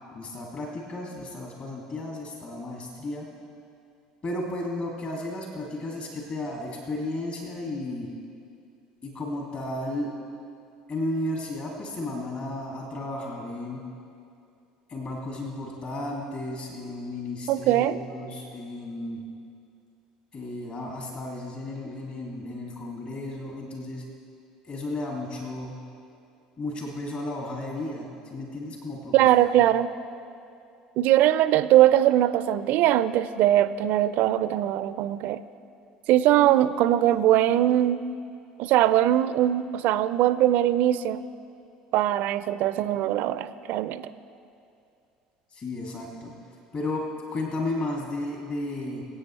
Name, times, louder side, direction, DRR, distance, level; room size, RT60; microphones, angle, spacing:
voice 1, 0.1-3.3 4.2-8.1 9.0-10.1 10.9-13.8 14.9-19.2 20.3-24.0 24.6-25.8 26.6-29.6 45.5-46.3 46.7-47.0 47.3-49.1, left 2 dB, 40° left, -1 dB, 2.3 m, -33 dB
voice 2, 17.5-18.0 29.1-29.9 31.0-35.4 36.1-38.0 38.6-41.2 41.9-44.1, right 13 dB, 55° right, 14 dB, 0.4 m, -21 dB
24.0 x 8.5 x 3.1 m, 2.5 s
hypercardioid pair, 70°, 3 cm